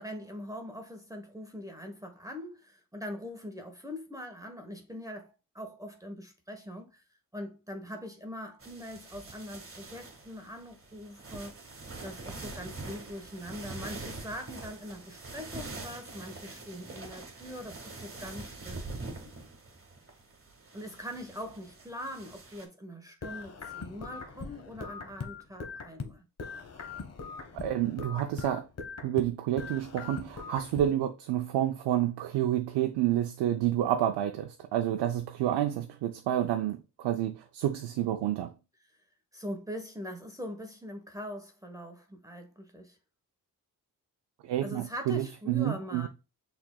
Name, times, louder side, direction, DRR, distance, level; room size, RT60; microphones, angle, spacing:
voice 1, 0.0-7.0 7.3-11.6 12.0-19.5 20.7-26.2 39.3-43.0 44.6-46.1, equal, 10° right, 1.0 m, -42 dB
sound 1, 8.6-22.7, right 3 dB, 30° right, 1.5 m, -44 dB
sound 2, 23.2-26.1 26.4-29.3 29.6-30.9, left 4 dB, 35° left, 0.9 m, -41 dB
voice 2, 27.5-28.7 29.0-38.5 44.4-46.1, right 12 dB, 80° right, 0.6 m, -29 dB
5.9 x 3.6 x 2.2 m
supercardioid pair, 55°, 42 cm